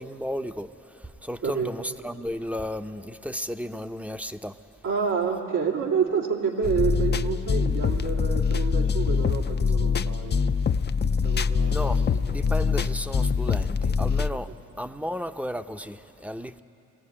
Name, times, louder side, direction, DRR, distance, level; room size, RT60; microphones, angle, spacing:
voice 1, 0.0-4.6 11.7-14.5 14.8-16.6, equal, 5° right, 0.7 m, -34 dB
voice 2, 4.8-10.5 11.2-12.4, right 6 dB, 85° right, 3.0 m, -28 dB
sound 1, 6.6-14.3, left 5 dB, 35° left, 0.5 m, -24 dB
21.5 x 16.0 x 9.9 m
cardioid pair, 75°, 31 cm